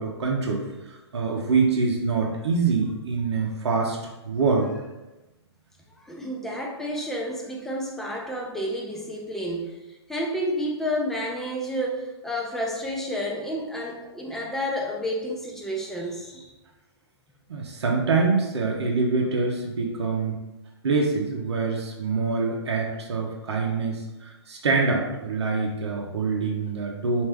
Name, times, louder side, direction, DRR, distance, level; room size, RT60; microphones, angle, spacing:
voice 1, 0.0-4.7 17.5-20.3 20.8-27.2, right 4 dB, 75° right, 0 dB, 0.7 m, -25 dB
voice 2, 6.0-9.8 10.1-16.5, equal, ahead, -2 dB, 0.5 m, -30 dB
3.4 x 2.6 x 3.3 m, 1.0 s
hypercardioid pair, 130°, 14 cm